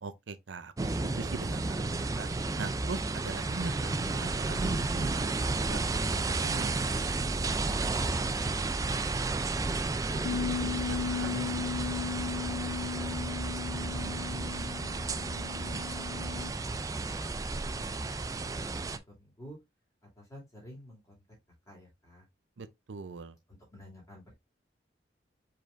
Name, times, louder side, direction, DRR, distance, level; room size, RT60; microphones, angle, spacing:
voice 1, 0.0-2.3 2.6-5.8 6.4-6.7 10.8-11.3 22.6-23.4, right 4 dB, 85° right, 0.6 m, -41 dB
sound 1, 0.8-19.0, right 3 dB, 20° right, 0.3 m, -32 dB
voice 2, 7.6-8.2 8.5-9.0 9.2-10.3 10.8-13.2 13.9-16.1 16.3-19.6 20.2-21.2 21.7-22.3 23.5-24.3, equal, 20° left, 2.5 m, -51 dB
Bass guitar, 10.2-16.5, left 7 dB, 65° left, 0.4 m, -36 dB
5.0 x 4.2 x 2.5 m
head